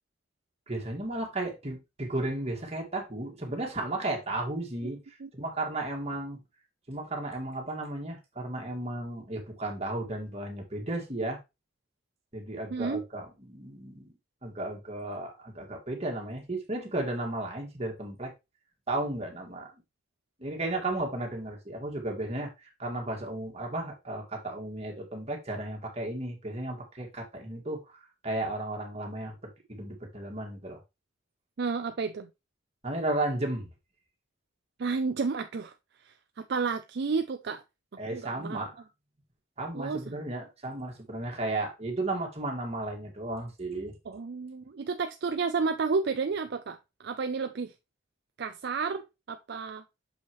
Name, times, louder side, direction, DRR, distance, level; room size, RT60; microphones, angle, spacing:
voice 1, 0.7-5.0 5.3-6.4 6.9-11.4 12.3-14.1 14.4-18.3 18.9-19.7 20.4-29.4 29.7-30.8 32.8-33.7 38.0-38.7 39.6-44.0, right 2 dB, 30° right, 2.0 m, -34 dB
voice 2, 12.7-13.0 31.6-32.3 34.8-35.7 36.0-37.6 38.1-38.6 39.7-40.2 44.1-47.7 48.4-49.8, right 4 dB, 55° right, 0.4 m, -31 dB
6.5 x 5.6 x 3.1 m
head